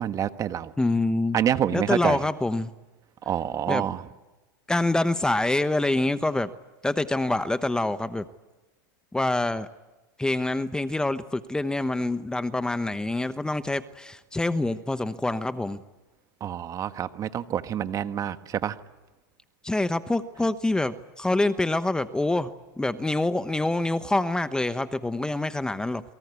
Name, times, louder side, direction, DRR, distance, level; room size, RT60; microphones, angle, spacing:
voice 1, 0.0-0.7 1.3-2.2 3.2-4.0 16.4-18.8, right 10 dB, 30° right, 11 dB, 1.5 m, -27 dB
voice 2, 0.8-1.4 1.7-2.7 3.7-3.8 4.7-6.5 6.8-8.3 9.1-9.7 10.2-15.8 19.6-22.5 22.8-26.0, left 2 dB, 5° left, 12 dB, 1.0 m, -26 dB
29.0 x 23.5 x 8.4 m, 1.1 s
supercardioid pair, 120°, 11 cm